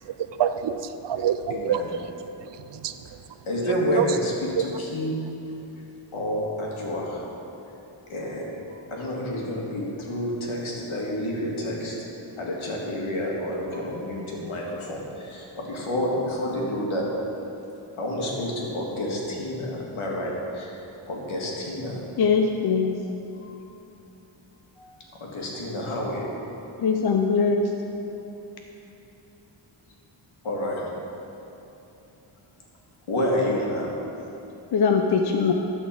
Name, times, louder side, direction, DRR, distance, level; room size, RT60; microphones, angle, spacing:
voice 1, 0.4-2.1 2.4-2.9 3.7-4.1 4.5-4.7, right 9 dB, 60° right, 11 dB, 0.5 m, -27 dB
voice 2, 1.5-1.9 3.5-5.2 6.1-7.2 8.1-11.9 12.4-17.1 18.0-20.8 21.1-22.0 23.4-23.6 24.8-24.9 25.2-26.4 30.4-30.9 33.1-33.9, left 1 dB, 75° left, -3 dB, 2.1 m, -29 dB
voice 3, 22.2-22.9 26.8-27.6 34.7-35.5, left 5 dB, 50° left, 3 dB, 0.7 m, -21 dB
12.5 x 4.3 x 7.4 m, 2.9 s
wide cardioid pair, 110°, 49 cm